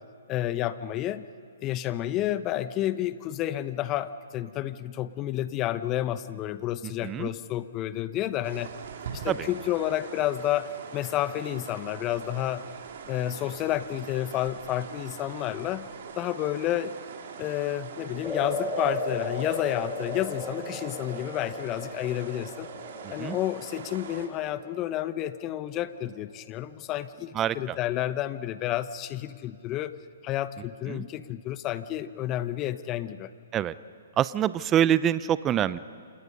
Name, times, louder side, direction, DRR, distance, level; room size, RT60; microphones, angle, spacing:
voice 1, 0.3-1.2 1.6-8.7 9.1-12.6 13.1-15.9 16.2-16.9 17.4-22.7 23.1-30.0 30.2-33.3, left 13 dB, 30° left, 14 dB, 0.9 m, -30 dB
sound 1, 8.4-24.3, right 6 dB, 55° right, 2.7 m, -43 dB
sound 2, 18.2-26.6, left 2 dB, 10° left, 2.6 m, -37 dB
voice 2, 23.0-23.4 27.3-27.8 30.9-31.0 33.5-33.7 34.2-35.8, right 10 dB, 20° right, 17 dB, 0.6 m, -25 dB
28.5 x 27.0 x 5.4 m, 2.2 s
hypercardioid pair, 130°, 0 cm